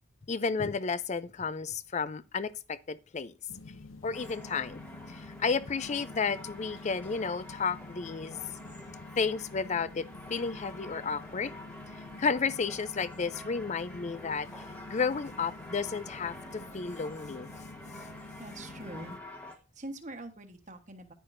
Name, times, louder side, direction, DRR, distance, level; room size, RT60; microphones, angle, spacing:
voice 1, 0.3-3.3 4.0-4.8 5.1-8.4 9.2-10.0 10.3-11.5 12.2-14.5 14.9-17.5, left 5 dB, 35° left, 0.4 m, -32 dB
sound 1, 3.5-19.2, left 3 dB, 70° left, 0.7 m, -48 dB
sound 2, 4.1-19.6, left 1 dB, 10° left, 1.2 m, -48 dB
voice 2, 18.4-19.2 19.8-21.1, right 2 dB, 35° right, 1.2 m, -43 dB
10.5 x 10.0 x 2.6 m
head